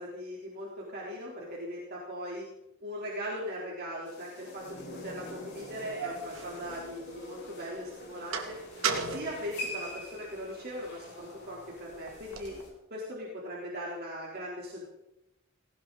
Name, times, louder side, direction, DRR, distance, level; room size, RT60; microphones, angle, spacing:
voice 1, 0.0-2.5 2.8-8.6 9.1-12.6 12.9-14.9, equal, 45° right, -5 dB, 3.9 m, -39 dB
sound 1, 4.1-12.7, left 1 dB, 50° left, 6.0 m, -45 dB
sound 2, 4.8-4.9 5.6-7.4 7.8-10.4 10.9-12.6, right 5 dB, 65° right, 2.3 m, -37 dB
18.5 x 18.0 x 4.2 m, 0.90 s
head